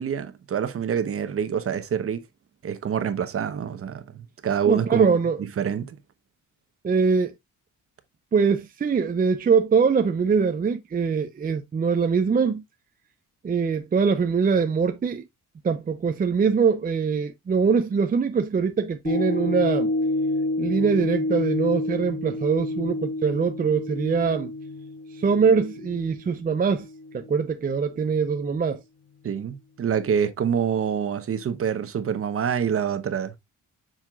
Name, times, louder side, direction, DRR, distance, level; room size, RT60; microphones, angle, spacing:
voice 1, 0.0-2.2 2.6-5.1 5.6-6.0 29.2-33.3, right 7 dB, 45° right, 0.9 m, -26 dB
voice 2, 4.7-5.4 6.8-7.3 8.3-12.6 13.4-15.2 15.6-19.9 20.6-24.5 25.2-26.9 27.1-28.8, right 5 dB, 30° right, 0.6 m, -23 dB
sound 1, 19.0-27.4 27.9-28.0, left 2 dB, 35° left, 1.4 m, -29 dB
7.4 x 5.8 x 2.4 m
cardioid pair, 150°, 32 cm